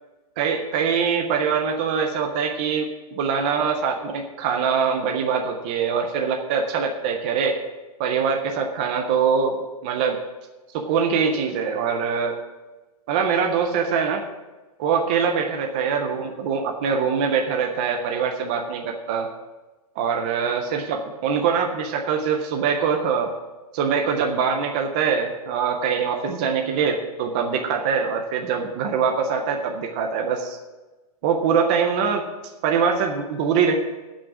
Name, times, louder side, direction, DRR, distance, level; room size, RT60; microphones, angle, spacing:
voice 1, 0.4-7.6 8.0-9.6 9.8-10.2 10.7-12.3 13.1-14.2 14.8-19.3 20.0-23.3 23.7-30.6 31.2-32.2 32.6-33.7, right 6 dB, 15° right, 3 dB, 0.3 m, -23 dB
10.5 x 6.2 x 8.0 m, 1.2 s
hypercardioid pair, 175°, 20 cm